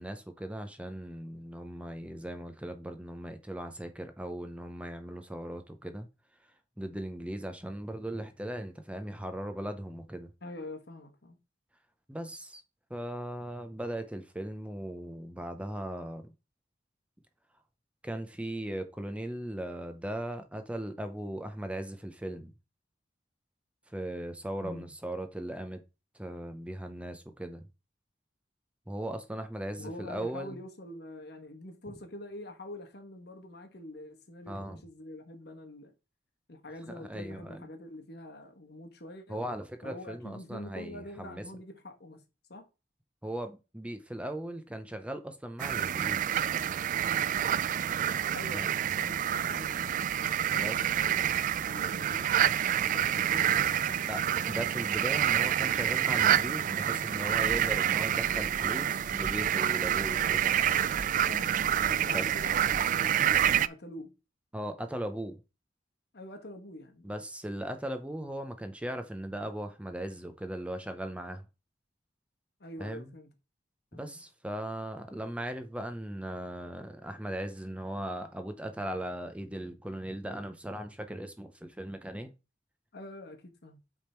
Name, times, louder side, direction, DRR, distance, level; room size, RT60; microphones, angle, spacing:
voice 1, 0.0-6.1 6.8-10.3 12.1-12.6 12.9-16.3 18.0-22.5 23.9-25.8 26.1-27.7 28.9-30.6 34.5-34.8 36.9-37.7 39.3-41.4 43.2-46.4 48.5-48.7 50.5-50.8 54.0-60.5 62.1-62.3 64.5-65.4 67.0-71.4 72.8-73.1 73.9-82.3, right 1 dB, 5° right, 0.7 m, -38 dB
voice 2, 10.4-11.4 24.6-24.9 29.8-35.9 36.5-39.4 39.8-42.2 42.5-42.7 48.3-54.1 61.3-61.6 61.8-64.2 66.1-67.2 72.6-73.3 73.9-74.2 82.9-83.8, left 1 dB, 65° left, 1.2 m, -45 dB
sound 1, 45.6-63.7, right 10 dB, 45° right, 0.3 m, -28 dB
sound 2, 58.2-63.6, right 1 dB, 90° right, 0.8 m, -47 dB
8.3 x 3.6 x 4.4 m
head